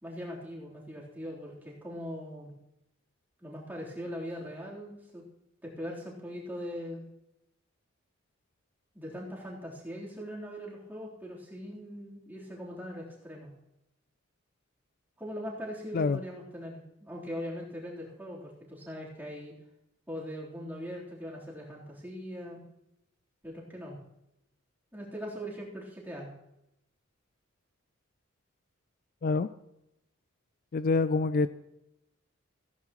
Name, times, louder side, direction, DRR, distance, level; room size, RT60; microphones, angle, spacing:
voice 1, 0.0-2.5 3.4-5.2 5.6-7.0 8.9-13.5 15.2-19.5 20.1-22.6 23.4-24.0 24.9-26.3, equal, 10° right, -6 dB, 3.5 m, -41 dB
voice 2, 30.7-31.5, left 4 dB, 45° left, 13 dB, 0.3 m, -26 dB
15.5 x 15.5 x 3.0 m, 0.85 s
head